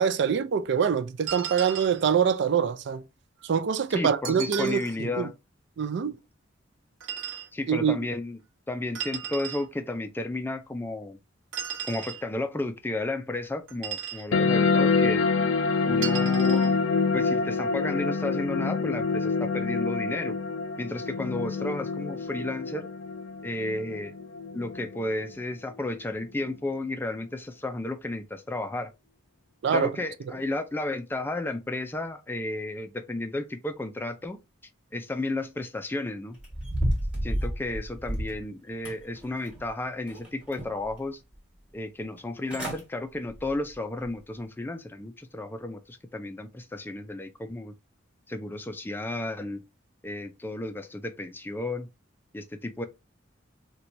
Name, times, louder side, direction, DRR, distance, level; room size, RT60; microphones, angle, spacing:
voice 1, 0.0-3.0 3.4-5.3 5.8-6.2 7.7-8.0 29.6-29.9, right 7 dB, 60° right, 0.4 m, -25 dB
sound 1, 1.3-2.0 4.2-5.0 7.0-7.5 8.9-9.7 11.5-12.2 13.7-14.3 16.0-16.7, right 8 dB, 80° right, 0.9 m, -35 dB
voice 2, 3.9-5.3 7.5-8.4 8.7-11.2 11.9-15.3 15.8-16.8 17.1-20.4 20.8-22.9 23.4-24.1 24.5-28.9 29.7-34.4 34.9-36.4 37.2-41.2 41.7-47.7 48.3-49.6 50.0-51.9 52.3-52.8, left 2 dB, 10° left, 0.3 m, -33 dB
sound 2, 14.3-25.3, left 4 dB, 85° left, 0.5 m, -26 dB
sound 3, 36.4-38.4 38.9-39.7 40.1-40.9 41.3-41.4 42.2-42.3 42.5-42.8 43.3-43.5 44.0-44.1, equal, 5° right, 1.2 m, -31 dB
4.4 x 2.2 x 2.6 m
head